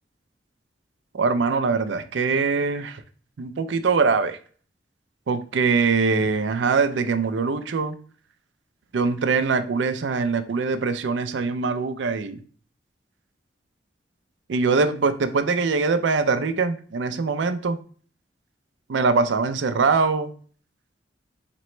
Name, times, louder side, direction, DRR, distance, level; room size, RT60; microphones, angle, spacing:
voice 1, 1.1-3.0 3.4-4.4 5.3-8.0 8.9-12.4 14.5-17.8 18.9-20.3, right 4 dB, 90° right, 10 dB, 0.5 m, -23 dB
4.3 x 2.9 x 3.1 m, 0.43 s
head